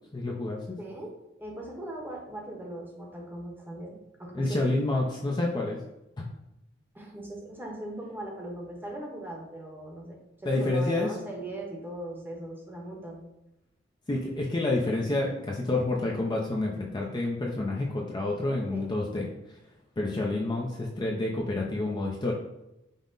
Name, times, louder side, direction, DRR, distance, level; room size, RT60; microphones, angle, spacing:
voice 1, 0.1-0.8 4.3-5.8 10.4-11.1 14.1-19.6 20.0-22.3, left 2 dB, 25° left, -2 dB, 0.4 m, -29 dB
voice 2, 0.8-1.1 1.4-4.7 6.9-10.2 10.5-13.2 18.7-19.0, right 1 dB, 10° right, -1 dB, 0.8 m, -39 dB
5.3 x 2.0 x 3.8 m, 0.91 s
head